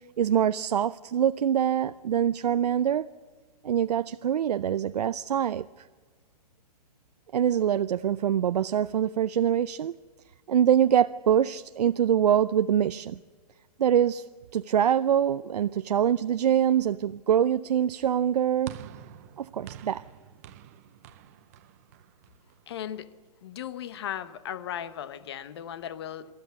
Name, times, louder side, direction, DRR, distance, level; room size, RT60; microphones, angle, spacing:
voice 1, 0.2-3.1 3.6-5.9 7.3-10.0 10.5-13.2 13.8-14.3 14.5-18.8 19.4-20.0, right 9 dB, 75° right, 0.5 m, -24 dB
sound 1, 18.7-23.1, right 10 dB, 25° right, 0.7 m, -47 dB
voice 2, 22.7-23.1 23.4-26.3, left 10 dB, 40° left, 1.0 m, -36 dB
27.5 x 13.0 x 8.3 m
hypercardioid pair, 170°, 21 cm